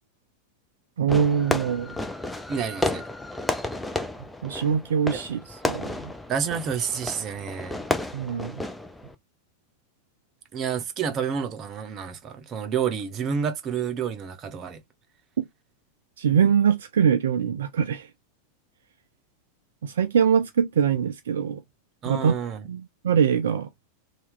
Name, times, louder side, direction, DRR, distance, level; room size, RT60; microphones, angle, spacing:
voice 1, 1.0-2.0 4.4-6.1 8.1-8.6 15.4-15.5 16.2-18.1 19.8-21.6 22.0-22.3 22.6-23.7, right 7 dB, 60° right, 0.3 m, -23 dB
Fireworks, 1.1-9.2, left 2 dB, 5° left, 0.5 m, -32 dB
voice 2, 2.5-3.0 6.3-7.8 10.5-14.8 22.0-22.7, right 7 dB, 30° right, 0.7 m, -29 dB
2.8 x 2.3 x 3.5 m
figure-of-eight pair, 90°, 0 cm